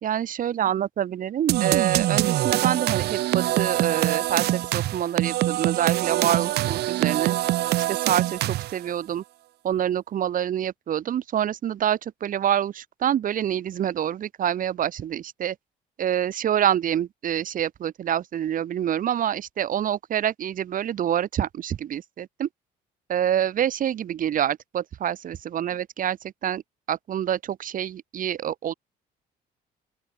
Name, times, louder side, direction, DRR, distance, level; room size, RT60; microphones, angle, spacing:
voice 1, 0.0-7.4 7.9-9.2 9.6-15.6 16.0-22.5 23.1-26.6 26.9-28.7, right 10 dB, 55° right, 2.6 m, -26 dB
sound 1, 1.5-8.9, right 16 dB, 75° right, 3.2 m, -24 dB
open air
cardioid pair, 110°, 17 cm